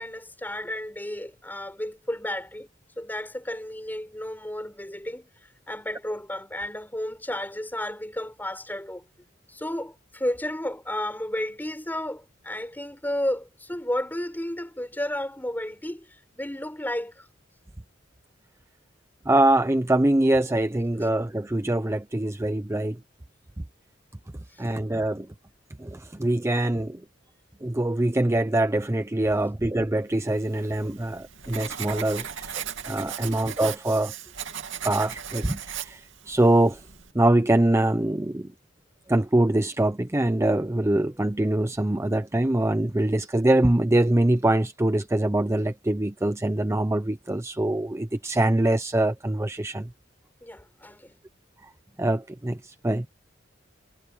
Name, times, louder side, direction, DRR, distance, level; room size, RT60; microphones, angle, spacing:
voice 1, 0.0-2.7 3.0-5.3 5.7-9.0 9.5-16.1 16.3-17.3 24.5-24.7 32.2-32.3 33.2-33.4 50.4-51.2, left 1 dB, 10° left, 4.6 m, -32 dB
voice 2, 19.3-23.0 24.6-25.3 25.8-27.0 27.6-34.1 34.8-36.8 37.1-38.5 39.1-49.9 52.0-53.1, right 1 dB, 15° right, 0.6 m, -24 dB
Writing, 30.4-37.1, right 8 dB, 85° right, 2.6 m, -37 dB
head